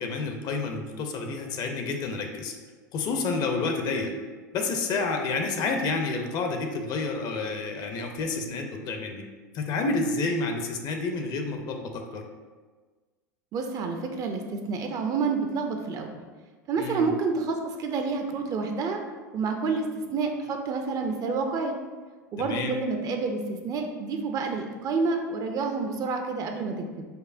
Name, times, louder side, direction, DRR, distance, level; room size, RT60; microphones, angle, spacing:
voice 1, 0.0-2.5 2.9-4.1 4.5-9.2 9.5-12.2 16.8-17.1 22.4-22.8, left 3 dB, 40° left, 4 dB, 0.5 m, -29 dB
voice 2, 13.5-16.2 16.7-19.0 19.3-21.8 22.3-27.1, right 4 dB, 35° right, 4 dB, 0.4 m, -29 dB
5.2 x 2.1 x 2.5 m, 1.4 s
hypercardioid pair, 85°, 10 cm